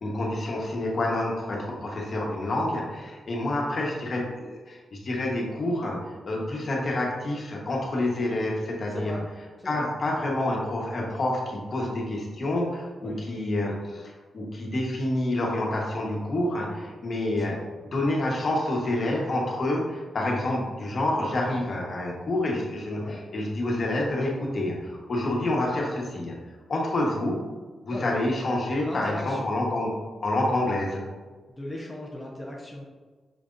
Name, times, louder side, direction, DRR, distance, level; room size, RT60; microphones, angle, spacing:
voice 1, 0.0-6.0 6.3-9.1 9.6-17.6 17.8-26.3 26.7-27.4 27.8-29.9 30.2-31.0, left 1 dB, 50° left, -2 dB, 1.2 m, -28 dB
voice 2, 8.9-9.2 9.6-9.8 13.0-13.2 17.4-17.6 23.0-23.2 27.9-28.1 28.8-29.5 31.6-32.8, left 1 dB, 10° left, -3 dB, 0.7 m, -37 dB
6.2 x 3.3 x 2.6 m, 1.4 s
cardioid pair, 90°, 0 cm